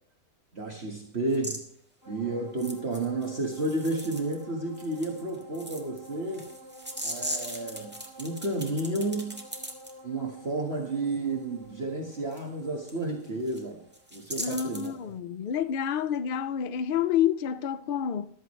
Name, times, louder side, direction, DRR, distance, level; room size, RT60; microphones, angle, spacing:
voice 1, 0.5-1.6 2.1-6.5 7.0-9.4 10.0-13.9 14.1-14.9, right 2 dB, 45° right, 1.9 m, -31 dB
sound 1, 1.3-1.6 2.6-4.4 4.7-9.9 12.3-12.4 12.9-13.0 13.2-13.6 13.9-14.9, equal, 5° right, 1.7 m, -39 dB
sound 2, 2.0-15.7 16.1-16.2, equal, 10° left, 3.1 m, -50 dB
voice 2, 14.4-18.3, left 9 dB, 85° left, 0.4 m, -28 dB
14.0 x 13.0 x 3.2 m
omnidirectional pair, 1.6 m